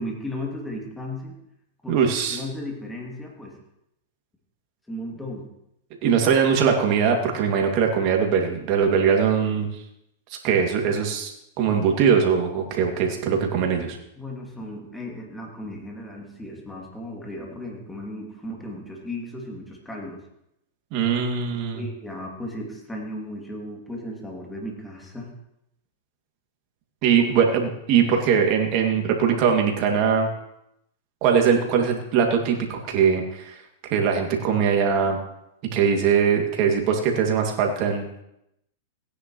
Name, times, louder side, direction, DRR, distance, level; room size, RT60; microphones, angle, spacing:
voice 1, 0.0-1.3 1.8-2.0 2.3-3.6 4.9-5.5 14.2-20.2 21.7-25.3 27.2-27.3, left 1 dB, 5° left, -1 dB, 2.7 m, -35 dB
voice 2, 1.9-2.4 6.0-9.7 10.4-11.3 11.6-14.0 20.9-21.8 27.0-30.3 31.2-33.5 33.9-35.2 35.7-38.1, right 7 dB, 50° right, 2 dB, 2.4 m, -21 dB
17.0 x 9.9 x 3.2 m, 0.81 s
hypercardioid pair, 120°, 0 cm